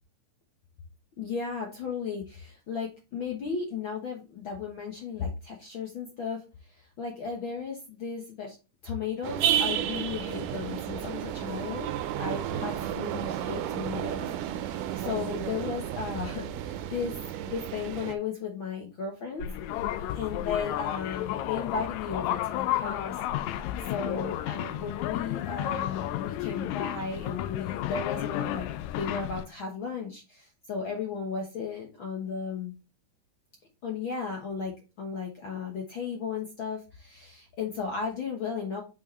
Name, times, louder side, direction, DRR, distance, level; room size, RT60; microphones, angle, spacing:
voice 1, 1.2-8.6 8.8-11.9 12.2-17.2 17.5-19.4 20.1-23.2 23.9-28.7 29.0-32.7 33.8-38.8, left 5 dB, 65° left, 1 dB, 1.2 m, -35 dB
sound 1, 9.2-18.2, right 10 dB, 80° right, 2.2 m, -32 dB
sound 2, 19.4-29.4, left 12 dB, 85° left, 1.7 m, -32 dB
6.6 x 5.6 x 3.1 m, 0.30 s
omnidirectional pair, 3.9 m